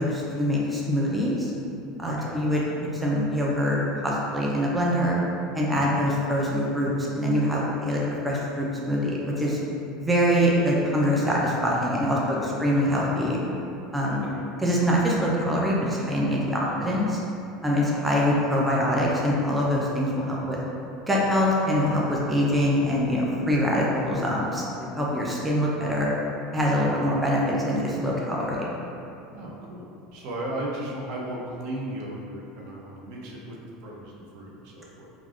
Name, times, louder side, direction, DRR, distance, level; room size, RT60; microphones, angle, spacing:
voice 1, 0.0-1.5 2.0-2.6 2.9-3.8 4.0-5.2 5.5-9.6 10.0-13.4 13.9-14.2 14.6-17.2 17.6-20.6 21.1-26.1 26.5-27.4 27.6-28.7, equal, 10° right, -4 dB, 0.4 m, -24 dB
voice 2, 2.0-2.5 5.7-6.0 12.1-12.6 14.1-14.5 16.5-16.9 26.8-27.2 29.3-35.3, right 1 dB, 65° right, -3 dB, 0.5 m, -37 dB
3.3 x 2.4 x 2.4 m, 2.7 s
supercardioid pair, 120°, 0 cm